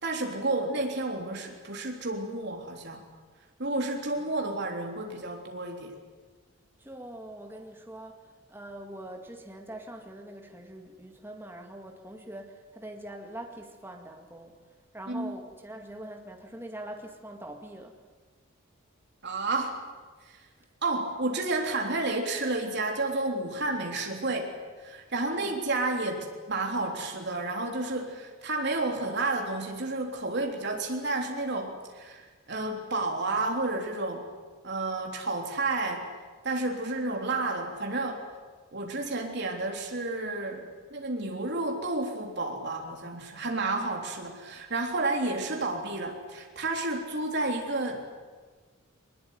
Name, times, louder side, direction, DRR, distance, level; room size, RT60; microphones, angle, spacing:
voice 1, 0.0-3.0 3.6-6.0 15.1-15.3 19.2-19.8 20.3-20.4 20.8-24.5 24.8-34.2 34.6-36.1 36.4-38.2 38.7-48.0, right 2 dB, 55° right, 2 dB, 3.5 m, -31 dB
voice 2, 6.8-14.5 14.9-18.0 25.3-25.6, right 1 dB, 10° right, 3 dB, 2.1 m, -43 dB
21.5 x 20.5 x 9.5 m, 1.4 s
head